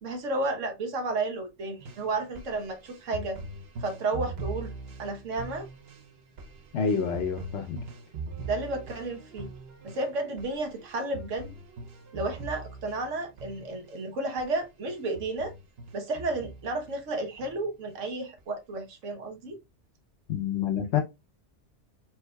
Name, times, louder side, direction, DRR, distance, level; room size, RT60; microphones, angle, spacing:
voice 1, 0.0-3.4 3.8-4.7 5.0-5.7 8.5-9.5 9.8-11.5 12.1-15.5 15.9-19.6, right 2 dB, 85° right, 1.3 m, -32 dB
sound 1, 1.8-14.0 14.4-14.6 14.9-17.0 17.4-17.9 18.4-18.5, right 3 dB, 60° right, 0.9 m, -42 dB
voice 2, 6.7-7.8 20.3-21.0, left 7 dB, 70° left, 1.1 m, -28 dB
4.5 x 3.9 x 2.2 m
omnidirectional pair, 1.2 m